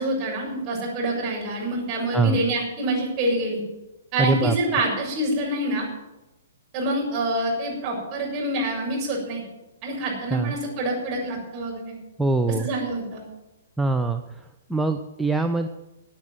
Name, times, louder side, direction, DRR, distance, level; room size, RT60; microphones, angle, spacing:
voice 1, 0.0-3.6 4.1-5.9 6.7-9.4 9.8-12.0 12.6-13.2, right 1 dB, 30° right, -2 dB, 7.1 m, -26 dB
voice 2, 4.2-4.6 10.3-10.5 12.2-12.7 13.8-15.7, right 3 dB, 5° right, 4 dB, 0.7 m, -23 dB
16.0 x 8.8 x 7.9 m, 1.0 s
figure-of-eight pair, 115°, 0 cm